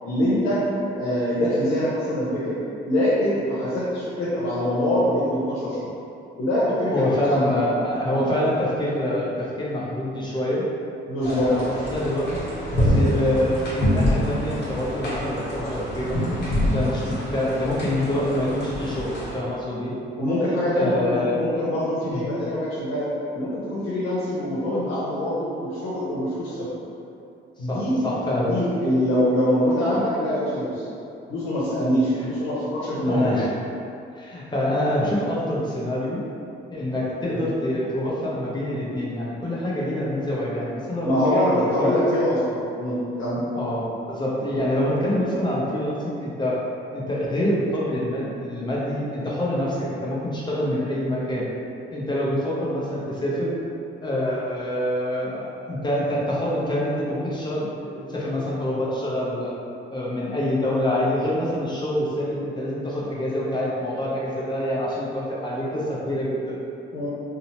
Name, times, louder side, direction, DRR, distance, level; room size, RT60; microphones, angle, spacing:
voice 1, 0.0-2.6 2.8-5.9 6.4-7.6 8.0-8.2 11.1-11.5 20.1-23.1 23.3-26.7 27.6-27.9 28.3-30.8 31.3-33.4 37.3-37.4 41.0-43.4 66.9-67.1, equal, 90° left, -9 dB, 0.7 m, -24 dB
voice 2, 6.9-10.6 11.2-12.4 12.7-19.9 20.7-21.4 22.0-22.3 27.7-28.6 33.1-33.5 34.2-36.2 36.7-42.2 43.5-46.6 46.9-51.5 51.9-53.5 54.0-59.5 59.9-66.6, left 1 dB, 20° left, -6 dB, 0.6 m, -26 dB
sound 1, 11.2-19.4, equal, 60° left, 0.9 m, -26 dB
2.8 x 2.0 x 2.8 m, 2.6 s
cardioid pair, 90°, 20 cm